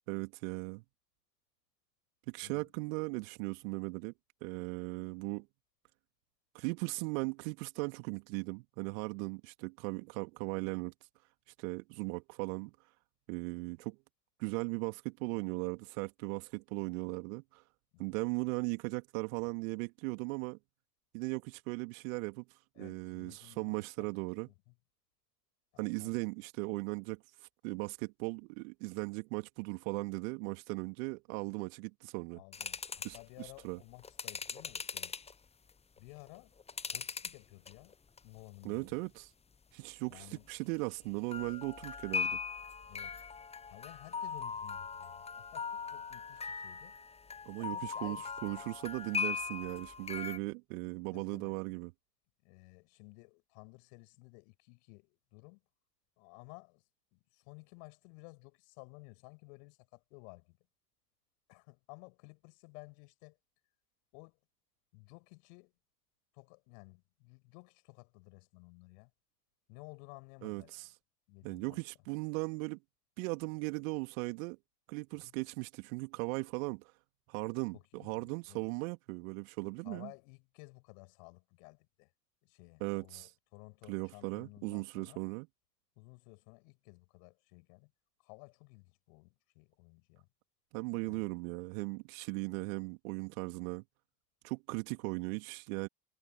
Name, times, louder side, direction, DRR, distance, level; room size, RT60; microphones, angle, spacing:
voice 1, 0.1-0.8 2.3-4.1 4.4-5.5 6.5-10.9 11.6-12.7 13.3-14.0 14.4-17.6 18.0-20.6 21.1-22.4 22.8-24.5 25.8-32.4 33.0-33.8 38.6-39.3 39.7-42.4 47.4-48.2 48.4-51.9 70.4-70.9 71.4-72.8 73.2-74.6 74.9-76.9 77.3-80.1 82.8-83.3 83.9-85.5 90.7-93.8 94.4-95.9, right 29 dB, 55° right, 2.7 m, -38 dB
voice 2, 22.8-24.1 24.5-24.7 25.7-26.2 32.3-35.2 36.0-36.5 36.8-38.0 38.2-39.1 40.1-40.5 42.9-43.2 43.7-47.0 47.6-48.6 51.1-51.5 52.4-55.6 56.2-56.9 57.1-60.6 61.5-63.4 64.1-64.4 64.9-65.7 66.3-69.1 69.7-70.9 71.3-71.8 75.2-75.3 77.7-78.7 79.8-82.1 82.4-85.2 86.0-87.9 88.2-90.3 91.0-91.3, left 37 dB, 55° left, 7.4 m, -55 dB
sound 1, 32.5-33.2 34.0-35.3 36.0-37.4 37.7-38.2 38.6-38.8 41.3-50.4, left 6 dB, 15° left, 1.1 m, -40 dB
figure-of-eight pair, 80°, 48 cm